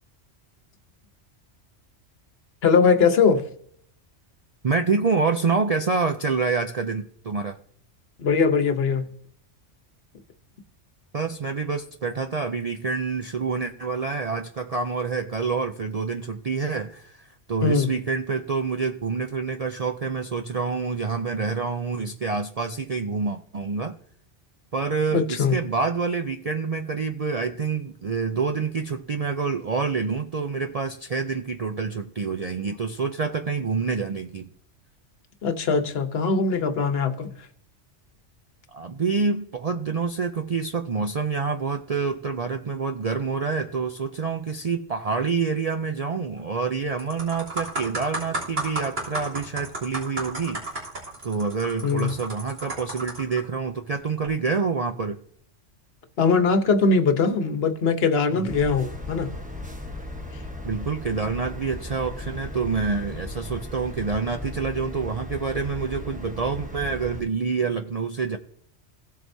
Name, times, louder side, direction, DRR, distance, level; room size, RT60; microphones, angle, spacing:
voice 1, 2.6-3.4 8.2-9.1 17.6-17.9 25.1-25.6 35.4-37.3 51.8-52.1 56.2-59.3, left 5 dB, 60° left, 8 dB, 1.2 m, -21 dB
voice 2, 4.6-7.6 11.1-24.0 24.7-34.5 38.7-50.6 51.2-55.2 58.3-58.6 60.6-68.4, right 4 dB, 45° right, 6 dB, 0.5 m, -27 dB
sound 1, 46.4-46.6 47.0-53.4 54.1-54.3, right 2 dB, 90° right, 3.6 m, -33 dB
sound 2, 58.5-67.2, left 1 dB, 5° right, 1.0 m, -36 dB
16.5 x 7.7 x 2.7 m, 0.64 s
omnidirectional pair, 1.2 m